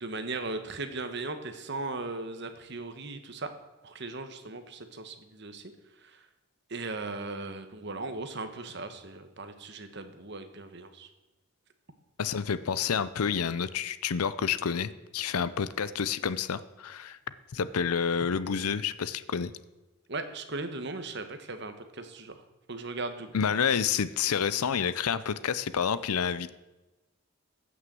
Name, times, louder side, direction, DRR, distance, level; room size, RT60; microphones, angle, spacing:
voice 1, 0.0-3.5 3.8-5.7 6.0-6.3 6.7-11.1 20.1-22.4 22.7-23.3, right 3 dB, 50° right, 8 dB, 1.2 m, -38 dB
voice 2, 12.2-17.2 17.5-19.5 23.3-26.5, left 7 dB, 85° left, 15 dB, 0.6 m, -29 dB
15.5 x 6.4 x 7.5 m, 1.1 s
head